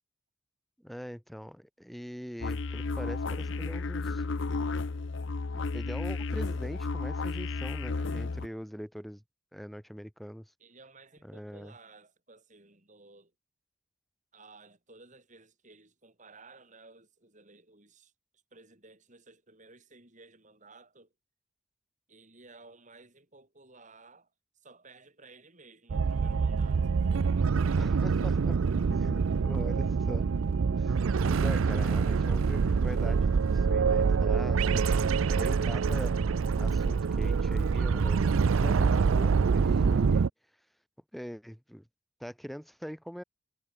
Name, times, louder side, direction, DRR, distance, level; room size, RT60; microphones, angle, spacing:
voice 1, 0.8-4.2 5.5-9.2 9.5-10.5 11.2-11.7 27.8-28.6 28.9-30.3 30.8-36.1 36.6-40.3 41.1-41.9 42.2-43.2, equal, ahead, 2.0 m, -42 dB
sound 1, 2.4-8.5, left 3 dB, 65° left, 0.7 m, -33 dB
voice 2, 10.6-13.3 14.3-18.1 18.5-21.1 22.1-24.3 24.6-27.5, right 3 dB, 40° right, 6.7 m, -56 dB
sound 2, 25.9-40.3, right 5 dB, 80° right, 0.5 m, -26 dB
head